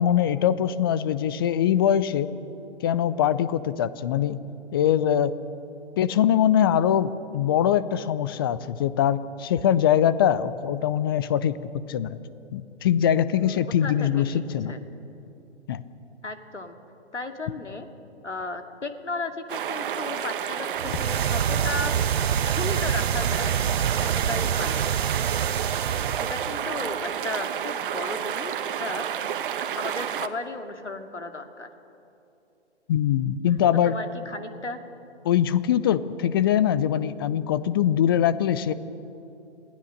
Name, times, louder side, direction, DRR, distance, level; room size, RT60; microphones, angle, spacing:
voice 1, 0.0-2.3 2.8-4.4 4.7-5.3 6.0-11.6 11.9-12.2 12.5-14.8 15.7-15.8 32.9-34.0 35.2-38.7, left 10 dB, 20° left, 16 dB, 0.5 m, -22 dB
voice 2, 13.4-14.4 14.7-14.8 16.2-16.8 17.1-17.9 18.2-23.6 24.0-24.8 26.3-29.3 29.7-31.7 33.8-34.8, left 2 dB, 85° left, 6 dB, 2.3 m, -35 dB
sound 1, 19.5-30.3, right 9 dB, 50° right, 1.3 m, -30 dB
sound 2, 20.8-26.7, right 8 dB, 65° right, 0.7 m, -26 dB
27.5 x 18.0 x 6.6 m, 2.8 s
figure-of-eight pair, 130°, 34 cm